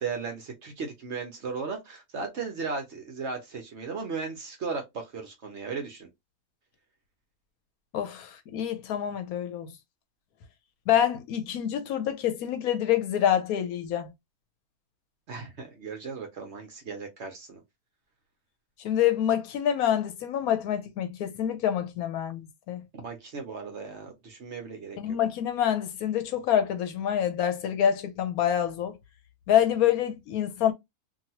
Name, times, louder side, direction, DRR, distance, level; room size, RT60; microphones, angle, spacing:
voice 1, 0.0-6.1 15.3-17.6 22.9-25.0, right 5 dB, 55° right, 1.0 m, -36 dB
voice 2, 7.9-9.7 10.9-14.1 18.8-22.8 25.0-29.0 29.5-30.7, left 10 dB, 75° left, 1.0 m, -26 dB
2.9 x 2.6 x 2.8 m
omnidirectional pair, 1.6 m